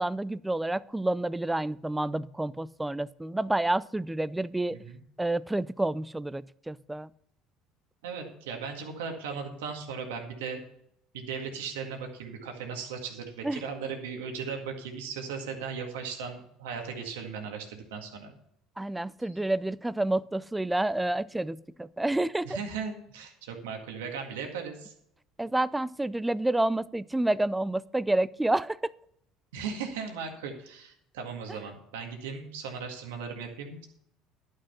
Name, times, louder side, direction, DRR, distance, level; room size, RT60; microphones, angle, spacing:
voice 1, 0.0-4.8 5.2-7.1 13.4-13.6 18.8-22.6 25.4-28.8, right 1 dB, 10° right, 19 dB, 0.4 m, -29 dB
voice 2, 8.0-10.6 11.1-18.3 22.4-24.9 29.5-33.9, right 6 dB, 90° right, 3 dB, 1.9 m, -37 dB
11.5 x 6.4 x 5.6 m, 0.72 s
supercardioid pair, 85°, 0 cm